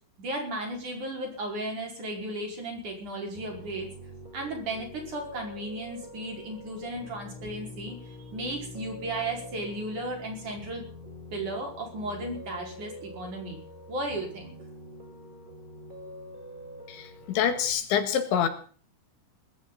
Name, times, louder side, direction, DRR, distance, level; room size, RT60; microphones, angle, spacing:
voice 1, 0.2-3.9 4.3-10.8 11.3-13.6 13.9-14.6, right 1 dB, 40° right, 0 dB, 6.3 m, -35 dB
Piano, 3.3-17.7, left 1 dB, 10° right, 5.5 m, -45 dB
voice 2, 16.9-18.5, left 8 dB, 75° left, 8 dB, 4.0 m, -26 dB
20.0 x 16.0 x 4.0 m, 0.43 s
omnidirectional pair, 5.4 m